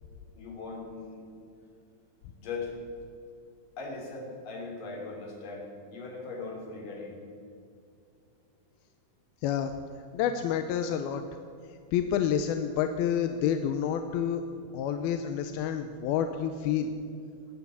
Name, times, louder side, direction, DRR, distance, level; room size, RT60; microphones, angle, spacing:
voice 1, 0.3-1.3 2.3-2.7 3.8-7.2, left 3 dB, 60° left, -1 dB, 4.6 m, -39 dB
voice 2, 9.4-9.7 10.1-11.2 11.9-14.4 14.7-16.9, left 9 dB, 85° left, 8 dB, 2.5 m, -28 dB
21.0 x 8.3 x 8.3 m, 2.5 s
omnidirectional pair, 4.5 m